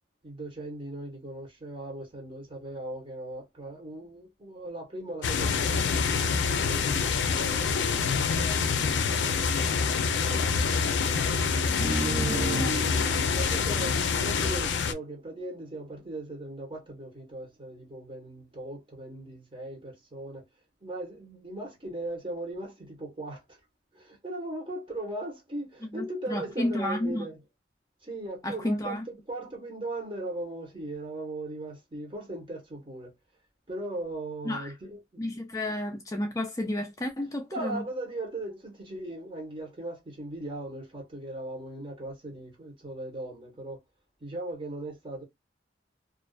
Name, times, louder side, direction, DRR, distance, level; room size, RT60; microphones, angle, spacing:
voice 1, 0.2-9.4 10.0-11.4 12.0-20.4 20.8-23.6 23.9-27.4 28.0-33.1 33.7-35.2 37.5-43.8 44.2-45.2, right 1 dB, 30° right, 0.9 m, -39 dB
sound 1, 5.2-14.9, left 5 dB, 90° left, 0.4 m, -26 dB
sound 2, 11.8-14.9, right 2 dB, 45° right, 0.4 m, -34 dB
voice 2, 25.9-27.2 28.4-29.0 34.5-34.7 35.2-37.8, left 1 dB, 20° left, 0.4 m, -31 dB
2.4 x 2.3 x 2.2 m
head